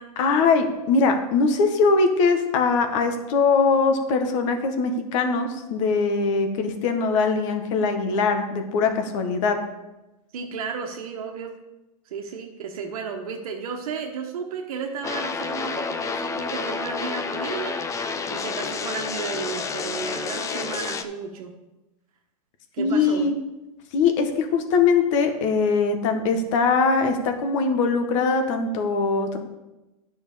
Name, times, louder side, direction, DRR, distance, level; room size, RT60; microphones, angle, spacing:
voice 1, 0.2-9.6 22.8-23.3 23.9-29.4, left 4 dB, 55° left, 6 dB, 1.6 m, -21 dB
voice 2, 10.3-11.5 12.1-17.8 18.3-21.5 22.7-23.3, right 6 dB, 70° right, 2 dB, 1.3 m, -33 dB
sound 1, 15.0-21.0, left 5 dB, 15° left, 0.5 m, -29 dB
9.8 x 6.2 x 5.2 m, 1.0 s
hypercardioid pair, 130°, 19 cm